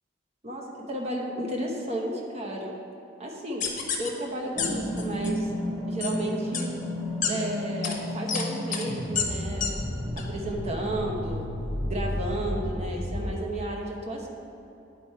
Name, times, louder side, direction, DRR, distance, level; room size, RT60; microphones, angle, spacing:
voice 1, 0.4-2.7 3.2-3.7 4.0-5.5 5.8-6.7 7.3-9.7 10.2-11.5 11.9-14.3, right 1 dB, 35° right, -1 dB, 1.0 m, -33 dB
sound 1, 3.6-4.1 4.6-4.7 5.0-5.3 6.0-6.1 6.5-6.6 7.2-7.3 7.8-7.9 8.3-8.4 8.7-8.8 9.1-9.2 9.6-9.7 10.2-10.3, left 7 dB, 40° left, 0.9 m, -28 dB
sound 2, 4.5-13.3, equal, 5° right, 1.1 m, -32 dB
10.5 x 4.7 x 4.4 m, 2.8 s
head